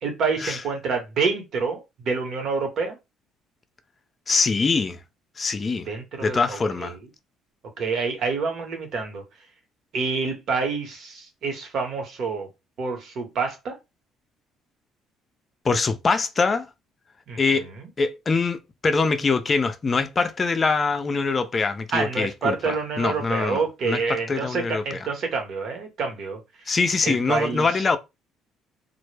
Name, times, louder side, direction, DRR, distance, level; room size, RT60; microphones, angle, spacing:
voice 1, 0.0-3.0 5.9-7.0 7.8-9.2 9.9-12.5 12.8-13.7 17.3-17.9 21.9-26.4 27.0-27.7, right 4 dB, 60° right, 0.9 m, -27 dB
voice 2, 4.3-5.0 5.4-5.9 6.2-6.9 15.6-16.7 17.4-17.7 18.0-25.0 26.7-28.0, left 4 dB, 35° left, 0.4 m, -24 dB
2.1 x 2.0 x 3.2 m
supercardioid pair, 75°, 0 cm